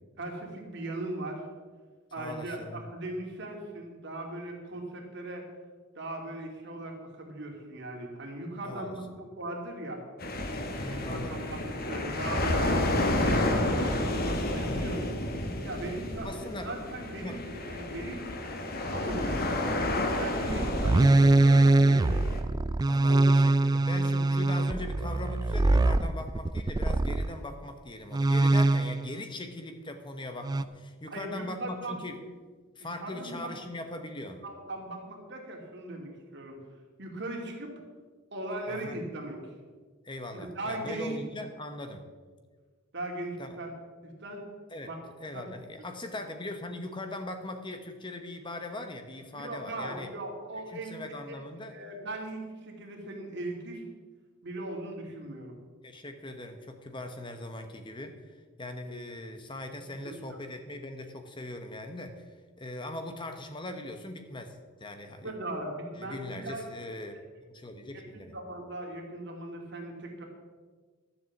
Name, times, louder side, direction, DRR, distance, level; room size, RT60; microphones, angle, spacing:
voice 1, 0.2-1.4 2.1-5.4 5.9-10.0 11.1-12.7 13.2-15.0 15.6-18.3 18.9-19.5 20.1-22.2 23.1-23.3 31.1-32.0 33.0-33.5 34.4-36.6 37.0-37.7 38.3-39.4 40.3-41.2 42.9-43.7 44.0-44.4 44.8-45.0 45.3-45.4 49.3-51.4 51.7-53.8 54.4-55.6 59.8-60.2 65.2-66.6 66.9-67.2 68.1-70.2, right 1 dB, 60° right, 0 dB, 2.5 m, -39 dB
voice 2, 2.2-2.8 8.6-8.9 10.7-11.4 14.6-14.9 16.2-16.7 17.2-17.4 22.8-32.2 32.8-34.4 38.7-39.0 40.0-42.0 43.4-43.6 44.7-44.9 45.2-50.1 50.7-51.8 55.8-62.2 62.6-65.3 65.9-67.2 67.5-68.4, left 1 dB, 25° left, 6 dB, 1.0 m, -40 dB
sound 1, 10.2-22.4, left 1 dB, 50° left, 1.4 m, -30 dB
sound 2, 20.5-27.3 28.1-29.1 30.4-30.6, right 2 dB, 20° right, 0.3 m, -23 dB
12.5 x 7.7 x 7.2 m, 1.4 s
head